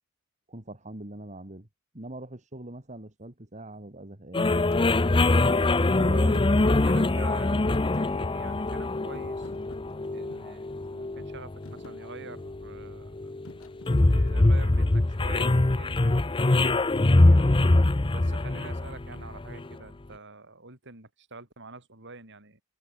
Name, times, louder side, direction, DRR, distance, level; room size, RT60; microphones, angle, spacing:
voice 1, 0.5-1.7 1.9-4.5 5.4-6.7, right 1 dB, 35° right, 2.5 m, -43 dB
sound 1, 4.3-19.7, left 2 dB, 25° left, 0.7 m, -23 dB
Thump thud, 4.7-4.9 6.3-7.4 7.7-8.7 9.1-10.6 11.1-11.4 11.6-12.0 13.4-14.5, left 2 dB, 75° left, 2.7 m, -49 dB
voice 2, 5.9-9.5 10.1-13.3 14.0-17.4 18.1-22.6, right 3 dB, 60° right, 6.2 m, -46 dB
head